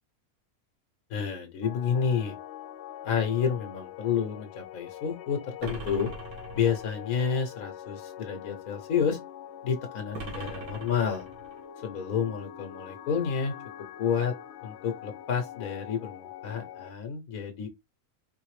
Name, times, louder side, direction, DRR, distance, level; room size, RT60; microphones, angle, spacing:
voice 1, 1.1-2.3 3.0-6.1 6.5-9.2 9.6-11.3 11.8-13.5 14.0-14.3 14.6-17.7, left 7 dB, 80° left, 1.3 m, -29 dB
sound 1, 1.6-16.9, left 11 dB, 65° left, 0.8 m, -44 dB
sound 2, 5.6-7.1 10.1-11.6, right 3 dB, 90° right, 1.6 m, -41 dB
4.5 x 3.3 x 3.2 m
omnidirectional pair, 1.5 m